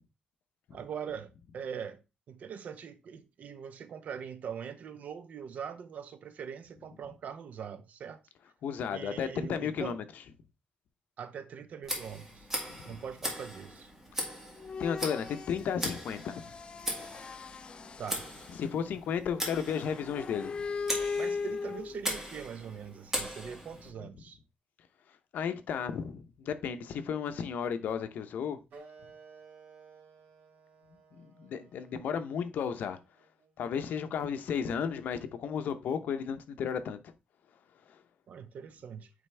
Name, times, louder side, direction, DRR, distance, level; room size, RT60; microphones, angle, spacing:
voice 1, 0.7-2.0 2.3-8.2 8.9-10.0 11.2-12.5 12.8-13.9 18.0-18.3 21.2-24.4 38.3-39.1, right 7 dB, 55° right, 0.7 m, -42 dB
voice 2, 8.6-10.0 12.7-12.9 14.8-16.4 18.6-20.6 25.3-28.6 31.1-33.0 33.6-37.0, left 7 dB, 75° left, 0.8 m, -33 dB
Tick, 11.8-23.9, equal, 10° right, 2.0 m, -39 dB
sound 1, 14.6-15.8 16.2-18.7 19.6-22.3, left 5 dB, 35° left, 0.4 m, -38 dB
Wind instrument woodwind instrument, 28.7-33.8, right 5 dB, 80° right, 2.0 m, -56 dB
8.9 x 3.4 x 3.3 m
wide cardioid pair, 150°, 3 cm